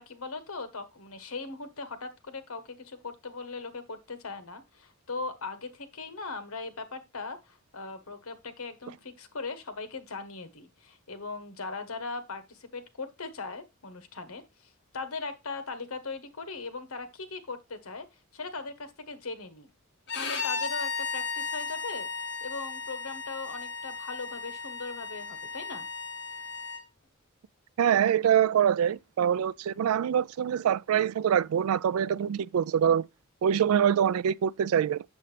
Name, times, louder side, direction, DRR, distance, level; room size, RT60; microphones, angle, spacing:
voice 1, 0.0-18.1 18.3-19.7 20.1-22.1 22.4-25.9, left 3 dB, 85° left, 1.2 m, -39 dB
Bowed string instrument, 20.1-26.8, left 5 dB, 55° left, 1.4 m, -35 dB
voice 2, 27.8-33.1 33.4-35.0, right 9 dB, 90° right, 0.3 m, -24 dB
7.9 x 7.0 x 3.3 m
head